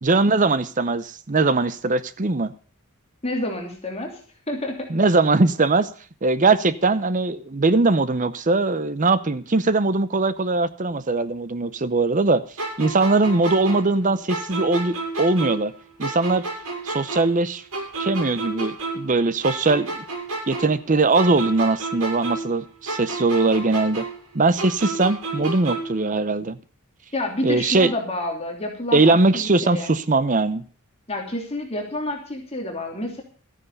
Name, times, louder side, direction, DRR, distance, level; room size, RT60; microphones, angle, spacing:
voice 1, 0.0-2.5 4.9-5.9 6.2-12.4 12.8-15.7 16.0-16.4 16.8-17.6 18.0-20.0 20.5-24.1 24.3-26.6 27.4-27.9 28.9-30.6, right 3 dB, 35° right, 0.7 m, -20 dB
voice 2, 3.2-4.2 4.5-4.9 27.1-29.9 31.1-33.2, left 1 dB, 30° left, 3.0 m, -29 dB
sound 1, 12.6-15.7 16.0-19.2 19.4-22.6 22.9-26.0, right 3 dB, 85° right, 6.2 m, -31 dB
13.5 x 9.8 x 6.6 m
head